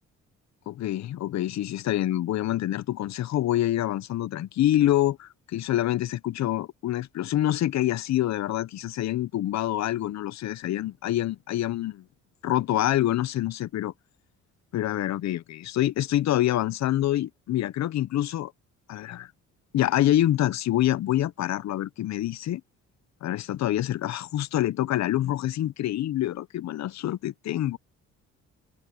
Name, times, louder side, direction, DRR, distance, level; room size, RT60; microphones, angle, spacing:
voice 1, 0.7-12.1 12.4-13.9 14.7-18.5 18.9-19.3 19.7-22.6 23.2-27.8, left 13 dB, 65° left, 0.7 m, -26 dB
cardioid pair, 90°, 30 cm